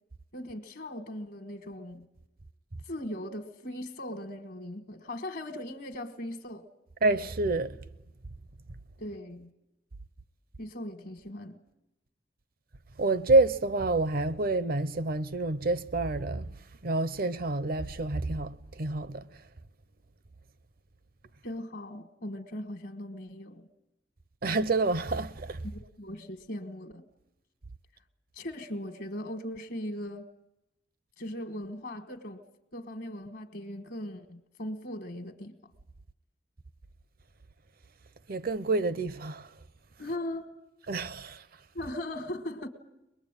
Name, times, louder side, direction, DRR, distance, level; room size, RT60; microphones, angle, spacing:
voice 1, 0.3-2.1 2.8-6.6 9.0-9.5 10.6-11.6 21.4-23.7 25.7-27.1 28.3-30.3 31.2-32.4 32.7-35.6 40.0-40.5 41.7-42.7, left 1 dB, 65° left, 1.5 m, -39 dB
voice 2, 7.0-7.8 13.0-16.5 16.8-19.3 24.4-25.6 38.3-39.5 40.9-41.4, right 2 dB, 55° right, 0.8 m, -28 dB
23.0 x 21.0 x 9.0 m
head